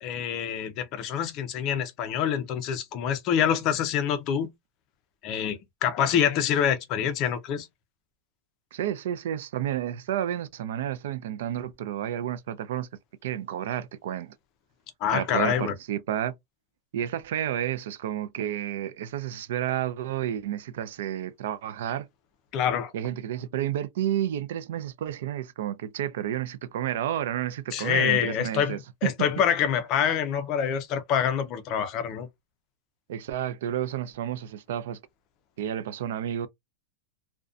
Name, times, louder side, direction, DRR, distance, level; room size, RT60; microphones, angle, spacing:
voice 1, 0.0-4.5 5.2-7.7 15.0-15.7 22.5-22.9 27.7-28.8 29.0-32.3, left 8 dB, 30° left, 0.4 m, -26 dB
voice 2, 8.7-12.9 13.2-14.3 15.1-16.3 16.9-22.1 22.9-29.1 33.1-35.0 35.6-36.5, right 11 dB, 70° right, 0.4 m, -31 dB
2.5 x 2.1 x 2.4 m
supercardioid pair, 170°, 0 cm